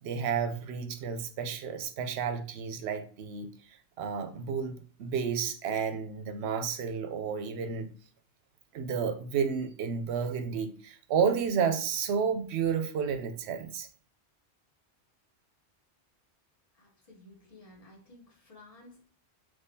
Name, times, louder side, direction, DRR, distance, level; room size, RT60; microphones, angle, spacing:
voice 1, 0.0-3.5 4.0-7.9 8.7-13.9, right 6 dB, 70° right, 0.8 m, -31 dB
voice 2, 16.8-19.0, left 2 dB, 35° left, 0.9 m, -54 dB
3.6 x 3.2 x 2.7 m
omnidirectional pair, 1.2 m